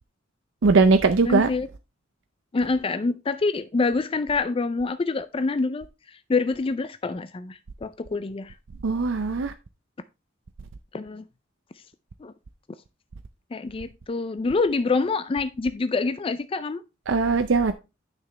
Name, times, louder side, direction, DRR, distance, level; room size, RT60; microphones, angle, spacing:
voice 1, 0.6-1.5 8.8-9.5 17.1-17.7, right 4 dB, 75° right, 0.5 m, -20 dB
voice 2, 1.2-1.7 2.5-8.5 10.9-11.2 12.2-12.3 13.5-16.8, left 3 dB, 30° left, 0.4 m, -26 dB
9.6 x 5.9 x 3.3 m
head